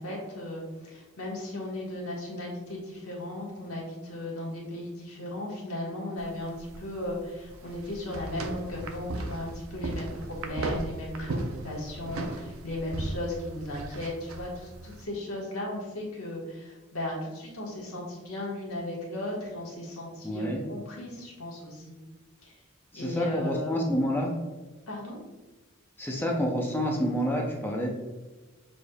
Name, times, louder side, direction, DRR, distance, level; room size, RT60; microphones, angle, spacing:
voice 1, 0.0-21.9 22.4-22.6 22.9-23.9 24.9-25.2, left 1 dB, 90° left, -3 dB, 1.4 m, -36 dB
sound 1, 6.2-15.1, right 2 dB, 75° right, 0.5 m, -37 dB
voice 2, 20.2-20.6 22.9-24.3 26.0-27.9, equal, 10° left, -1 dB, 0.5 m, -28 dB
6.1 x 3.4 x 2.3 m, 1.2 s
head